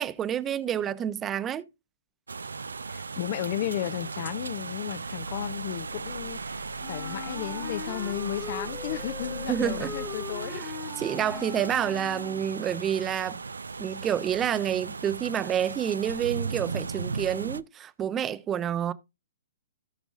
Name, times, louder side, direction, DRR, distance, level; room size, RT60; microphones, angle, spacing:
voice 1, 0.0-1.6 9.5-9.9 10.6-10.7 11.0-13.4 13.8-18.9, right 9 dB, 20° right, 0.7 m, -28 dB
sound 1, 2.3-17.6, right 4 dB, 80° right, 0.5 m, -36 dB
voice 2, 2.9-6.6 6.9-10.6, left 13 dB, 45° left, 0.6 m, -34 dB
Wind instrument woodwind instrument, 6.8-12.6, left 6 dB, 20° left, 1.4 m, -40 dB
17.5 x 6.1 x 2.5 m
figure-of-eight pair, 125°, 0 cm